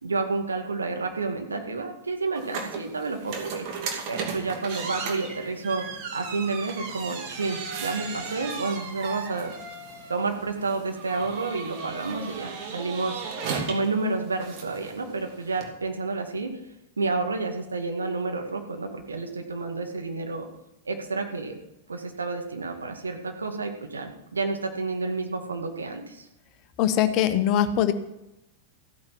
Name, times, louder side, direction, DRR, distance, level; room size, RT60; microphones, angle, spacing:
voice 1, 0.0-3.7 4.1-5.8 6.1-9.5 10.1-16.6 17.0-20.5 20.9-21.6 21.9-26.3, right 3 dB, 75° right, 4 dB, 2.0 m, -30 dB
sound 1, 2.4-15.7, right 5 dB, 45° right, 2.7 m, -36 dB
voice 2, 26.8-27.9, left 10 dB, 40° left, 10 dB, 1.2 m, -22 dB
14.5 x 9.5 x 6.0 m, 0.90 s
figure-of-eight pair, 95°, 0 cm